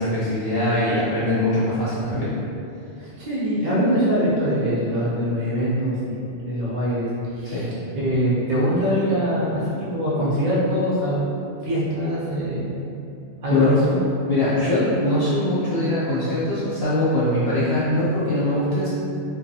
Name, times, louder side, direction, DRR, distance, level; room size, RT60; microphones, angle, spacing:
voice 1, 0.0-2.3 7.4-7.7 13.5-13.8 14.3-18.9, left 1 dB, 60° left, -10 dB, 0.8 m, -22 dB
voice 2, 3.0-7.6 7.9-12.7 13.4-14.0, equal, 55° right, -8 dB, 0.5 m, -23 dB
2.4 x 2.3 x 2.6 m, 2.6 s
omnidirectional pair, 1.2 m